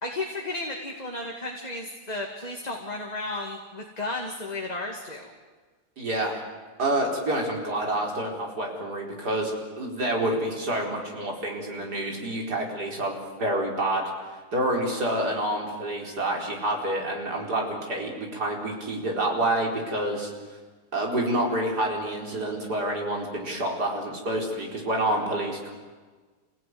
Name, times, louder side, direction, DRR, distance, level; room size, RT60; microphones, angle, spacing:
voice 1, 0.0-5.3, left 2 dB, 25° left, 1 dB, 2.3 m, -33 dB
voice 2, 6.0-6.4 6.8-14.0 14.5-20.3 20.9-25.7, right 1 dB, 70° right, 0 dB, 4.9 m, -28 dB
27.0 x 17.5 x 9.6 m, 1.4 s
omnidirectional pair, 1.8 m